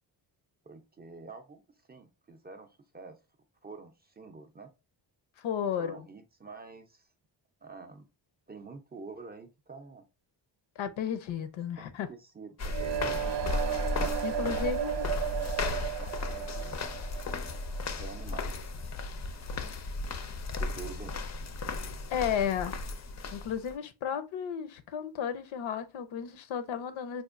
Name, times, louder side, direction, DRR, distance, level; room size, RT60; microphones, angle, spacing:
voice 1, 0.6-1.6 1.9-3.2 3.6-4.7 5.8-7.1 7.6-8.1 8.5-10.1 12.1-13.3 14.4-14.6 15.0-16.9 18.0-18.9 20.6-21.1, right 4 dB, 20° right, 0.4 m, -47 dB
voice 2, 5.4-6.0 10.8-12.1 14.2-15.1 22.1-22.7 23.3-27.2, left 8 dB, 90° left, 0.7 m, -33 dB
sound 1, 12.6-23.7, left 3 dB, 40° left, 0.4 m, -35 dB
sound 2, 12.7-18.6, right 10 dB, 65° right, 0.6 m, -34 dB
4.3 x 2.5 x 2.4 m
wide cardioid pair, 120°, 45 cm